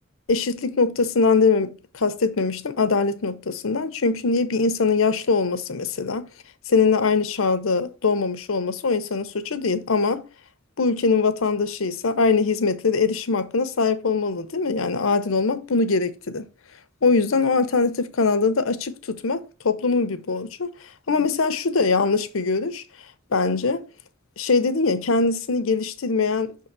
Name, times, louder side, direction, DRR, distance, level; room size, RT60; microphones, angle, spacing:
voice 1, 0.3-6.3 6.7-10.2 10.8-16.5 17.0-20.7 21.1-22.8 23.3-23.8 24.4-26.7, left 4 dB, 75° left, 0.7 m, -22 dB
6.0 x 3.8 x 5.8 m
head